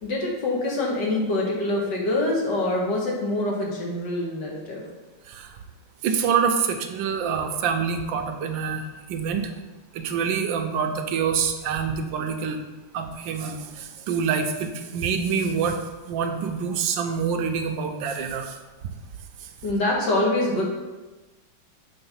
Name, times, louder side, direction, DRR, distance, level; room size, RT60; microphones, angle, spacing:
voice 1, 0.0-4.8 19.6-20.6, left 2 dB, 65° left, -2 dB, 2.0 m, -25 dB
voice 2, 5.3-5.6 6.0-9.5 9.9-12.6 12.9-15.8 16.1-18.6 19.4-19.5, right 6 dB, 85° right, 5 dB, 1.4 m, -26 dB
6.8 x 3.4 x 5.6 m, 1.2 s
omnidirectional pair, 2.0 m